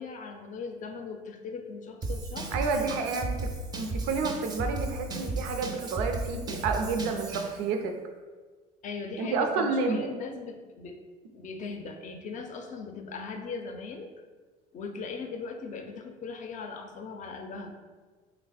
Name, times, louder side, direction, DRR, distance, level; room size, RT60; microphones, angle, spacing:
voice 1, 0.0-2.5 8.8-11.0 11.3-14.1 14.7-17.7, left 4 dB, 45° left, 5 dB, 0.5 m, -38 dB
Drum kit / Drum, 2.0-7.6, right 2 dB, 20° right, 0.4 m, -34 dB
voice 2, 2.5-3.3 3.7-7.9 9.2-10.1, right 4 dB, 80° right, 5 dB, 0.5 m, -30 dB
3.1 x 2.0 x 4.1 m, 1.4 s
supercardioid pair, 85°, 18 cm